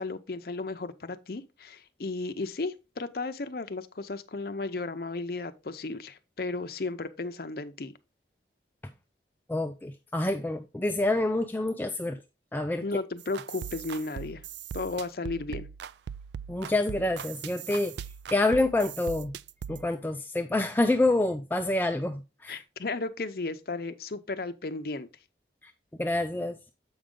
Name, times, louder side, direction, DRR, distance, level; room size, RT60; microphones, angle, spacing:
voice 1, 0.0-7.9 12.8-14.4 14.7-15.7 22.5-25.1, left 3 dB, 55° left, 0.6 m, -34 dB
voice 2, 9.5-12.2 12.5-12.8 16.5-18.0 18.3-19.3 19.7-22.6 25.6-25.7 26.0-26.6, left 2 dB, 10° left, 0.3 m, -27 dB
sound 1, 13.2-19.9, right 8 dB, 70° right, 0.3 m, -40 dB
7.8 x 5.1 x 3.7 m
head